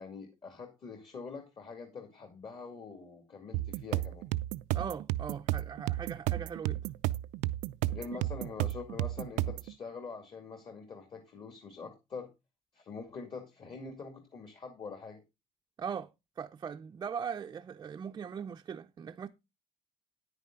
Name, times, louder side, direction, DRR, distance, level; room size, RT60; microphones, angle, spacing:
voice 1, 0.0-4.2 7.9-12.3 12.7-15.2, left 4 dB, 40° left, 2.3 m, -44 dB
sound 1, 3.5-9.7, right 16 dB, 90° right, 0.5 m, -33 dB
voice 2, 4.7-6.9 8.1-8.2 15.8-16.1 16.4-19.3, right 7 dB, 30° right, 0.5 m, -40 dB
9.9 x 9.4 x 3.8 m
cardioid pair, 140°, 12 cm